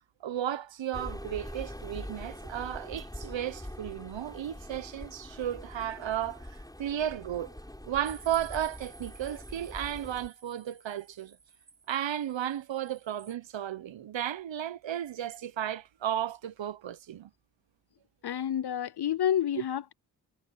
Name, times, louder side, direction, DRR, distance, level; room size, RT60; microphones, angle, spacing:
voice 1, 0.2-6.5 6.8-7.6 7.8-11.4 11.9-17.3, right 11 dB, 70° right, 1.1 m, -34 dB
sound 1, 0.9-10.3, left 1 dB, 10° left, 6.3 m, -44 dB
sound 2, 8.0-13.3, right 5 dB, 45° right, 2.1 m, -54 dB
voice 2, 18.2-19.9, left 10 dB, 55° left, 0.7 m, -29 dB
supercardioid pair, 40°, 46 cm